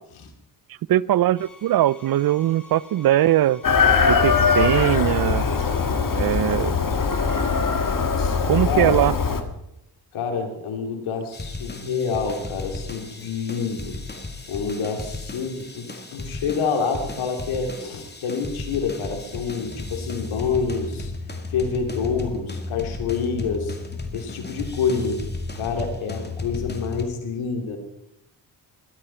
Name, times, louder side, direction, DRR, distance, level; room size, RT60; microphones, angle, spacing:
voice 1, 0.9-3.6 4.1-5.5 6.1-6.8 8.5-9.1, right 13 dB, 50° right, 23 dB, 0.5 m, -20 dB
sound 1, 1.4-6.4, left 1 dB, 5° left, 5.5 m, -47 dB
Chicken rooster, 3.6-9.4, left 5 dB, 40° left, 1.8 m, -21 dB
voice 2, 8.6-9.0 10.1-14.0 14.5-21.1 21.5-23.8 24.1-25.2 25.5-27.8, left 5 dB, 85° left, 4 dB, 2.7 m, -27 dB
sound 2, 11.3-27.1, left 3 dB, 20° left, 2.4 m, -34 dB
17.5 x 12.5 x 4.4 m, 0.83 s
cardioid pair, 60°, 47 cm